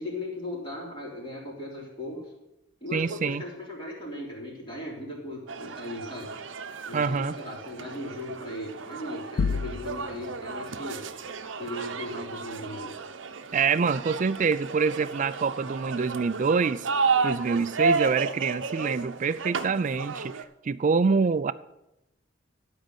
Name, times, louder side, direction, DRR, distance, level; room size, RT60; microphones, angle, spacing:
voice 1, 0.0-2.2 2.8-6.3 6.9-11.0 11.6-12.9, left 1 dB, 25° left, 3.7 m, -37 dB
voice 2, 2.9-3.4 6.9-7.3 13.5-16.9 17.2-21.5, right 5 dB, 40° right, 0.4 m, -26 dB
sound 1, 5.5-20.4, right 4 dB, 85° right, 0.8 m, -32 dB
sound 2, 9.4-10.3, left 5 dB, 55° left, 0.3 m, -29 dB
12.0 x 5.3 x 8.0 m
head